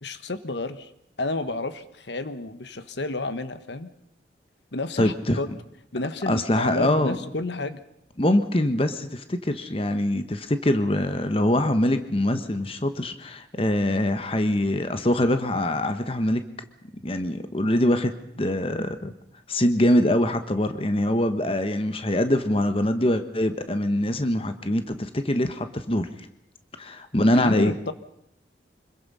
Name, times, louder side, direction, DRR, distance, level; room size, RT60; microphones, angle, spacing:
voice 1, 0.0-0.9 1.2-3.9 4.7-5.5 5.9-7.8 27.3-27.9, left 2 dB, 75° left, 11 dB, 1.3 m, -31 dB
voice 2, 5.0-5.4 6.3-7.1 8.2-16.4 17.0-19.1 19.5-26.1 26.8-27.7, left 1 dB, 30° left, 9 dB, 1.3 m, -23 dB
25.5 x 21.5 x 5.6 m, 0.78 s
head